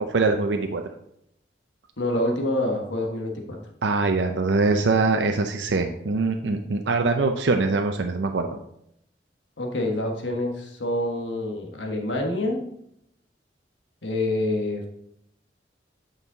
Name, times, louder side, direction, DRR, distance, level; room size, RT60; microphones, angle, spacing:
voice 1, 0.1-0.8 3.8-8.6, right 3 dB, 80° right, 5 dB, 0.6 m, -23 dB
voice 2, 2.0-3.6 9.6-12.6 14.0-14.9, left 1 dB, 90° left, 2 dB, 1.4 m, -27 dB
8.5 x 5.4 x 4.0 m, 0.76 s
head